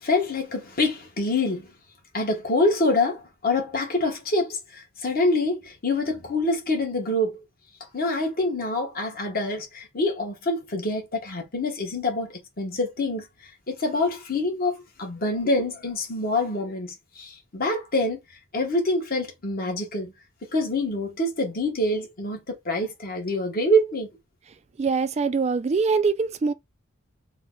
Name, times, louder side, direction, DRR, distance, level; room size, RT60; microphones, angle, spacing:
voice 1, 0.0-1.7 2.1-7.4 7.9-13.3 13.7-18.2 18.5-20.1 20.5-24.1, left 1 dB, 45° left, 1.3 m, -26 dB
voice 2, 24.8-26.5, right 4 dB, 30° right, 0.3 m, -23 dB
3.9 x 2.1 x 3.8 m
head